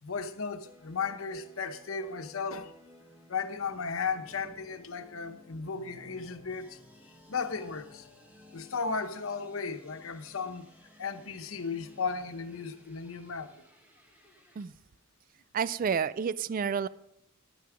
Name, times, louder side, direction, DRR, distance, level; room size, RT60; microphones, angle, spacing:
voice 1, 0.0-2.7 3.3-6.8 7.3-8.1 8.5-10.7 11.0-13.5, left 5 dB, 80° left, 0.9 m, -35 dB
sound 1, 0.6-14.6, left 1 dB, 10° right, 1.3 m, -58 dB
sound 2, 3.5-10.3 10.6-10.7, equal, 85° right, 4.9 m, -59 dB
voice 2, 15.5-16.9, right 6 dB, 40° right, 0.3 m, -29 dB
11.5 x 9.3 x 5.0 m
head